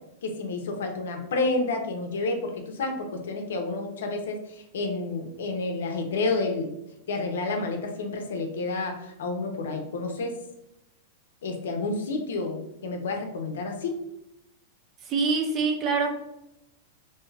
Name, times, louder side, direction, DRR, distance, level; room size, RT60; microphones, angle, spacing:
voice 1, 0.2-6.8 7.1-10.3 11.4-13.9, left 3 dB, 80° left, 4 dB, 0.6 m, -30 dB
voice 2, 15.0-16.1, right 4 dB, 20° right, 4 dB, 0.3 m, -25 dB
2.7 x 2.3 x 3.2 m, 0.85 s
supercardioid pair, 180°, 0 cm